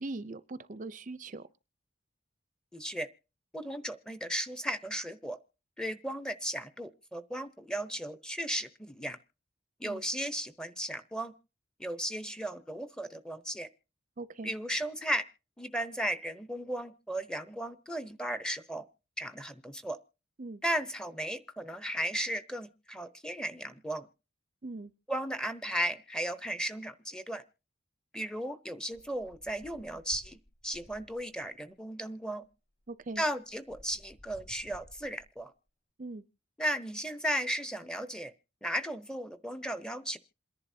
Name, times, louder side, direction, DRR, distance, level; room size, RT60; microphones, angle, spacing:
voice 1, 0.0-1.4 9.8-10.0 14.2-14.5 20.4-20.6 24.6-24.9 32.9-33.2 36.0-36.2, right 2 dB, 40° right, 0.6 m, -41 dB
voice 2, 2.7-3.1 3.5-5.4 5.8-9.2 9.8-11.3 11.8-13.7 14.4-15.2 15.6-18.8 19.2-20.0 20.6-24.1 25.1-27.4 28.1-30.4 30.6-32.4 33.2-35.5 36.6-38.3 38.6-40.2, equal, 5° left, 0.8 m, -35 dB
sound 1, 28.9-31.5 32.4-32.5 32.8-35.4, equal, 40° left, 6.3 m, -57 dB
27.5 x 11.0 x 2.8 m
head